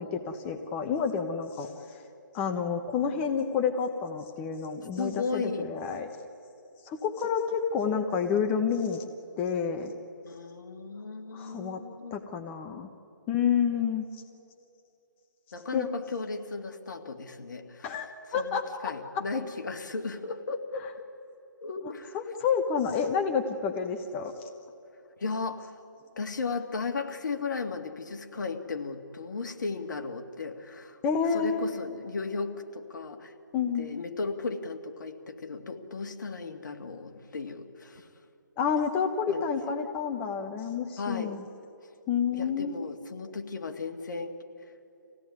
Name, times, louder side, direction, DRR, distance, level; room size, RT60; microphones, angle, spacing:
voice 1, 0.0-2.0 2.3-6.1 6.8-9.0 9.4-9.9 11.3-11.8 12.1-12.9 13.3-14.1 15.7-15.9 17.8-18.9 22.1-24.3 31.0-31.9 33.5-33.9 38.6-41.4 42.1-42.8, left 6 dB, 20° left, 5 dB, 1.0 m, -29 dB
voice 2, 5.0-5.7 10.2-12.2 15.5-18.0 18.4-20.9 21.6-22.2 25.2-25.8 26.2-31.0 31.3-33.3 33.7-38.1 39.3-39.4 41.0-41.3 42.3-44.4, left 4 dB, 65° left, 5 dB, 2.1 m, -35 dB
26.0 x 17.0 x 9.7 m, 2.8 s
hypercardioid pair, 150°, 11 cm